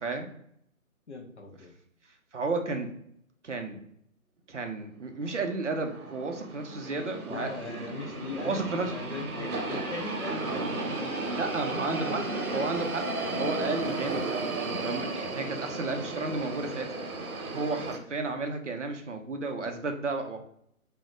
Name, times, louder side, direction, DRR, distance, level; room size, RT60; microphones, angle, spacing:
voice 1, 1.1-1.7 7.3-12.9, left 3 dB, 55° left, 2 dB, 0.5 m, -40 dB
voice 2, 2.3-2.9 3.4-3.8 4.5-7.8 8.4-9.0 9.4-9.5 11.3-12.2 12.5-13.0 13.4-16.9 17.5-20.4, right 3 dB, 55° right, 5 dB, 0.5 m, -33 dB
sound 1, 5.4-18.0, right 2 dB, 90° right, 0.8 m, -34 dB
2.2 x 2.1 x 3.7 m, 0.70 s
hypercardioid pair, 175°, 43 cm